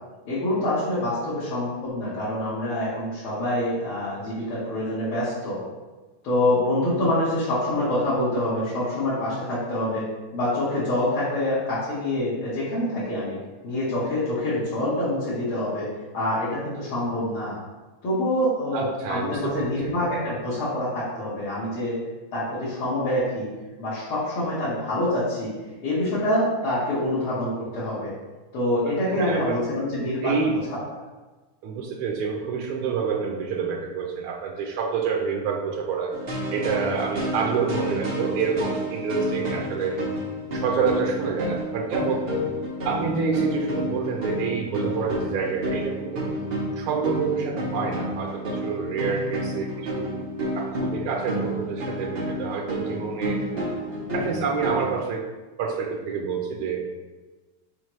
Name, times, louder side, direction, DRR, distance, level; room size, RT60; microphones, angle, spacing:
voice 1, 0.2-5.6 6.2-10.0 10.3-13.4 13.6-15.9 16.1-17.6 18.0-22.0 22.3-23.5 23.8-25.5 25.8-28.1 28.5-30.6, left 1 dB, 85° left, -11 dB, 2.5 m, -26 dB
voice 2, 18.7-19.8 28.9-29.6 30.2-30.6 31.6-36.2 36.5-40.0 40.5-42.3 42.8-46.3 46.8-50.1 50.6-53.4 54.1-55.2 55.6-56.9, right 5 dB, 90° right, 1 dB, 1.6 m, -28 dB
sound 1, 36.1-55.0, equal, 35° right, 1.0 m, -30 dB
6.3 x 5.0 x 3.1 m, 1.2 s
omnidirectional pair, 2.3 m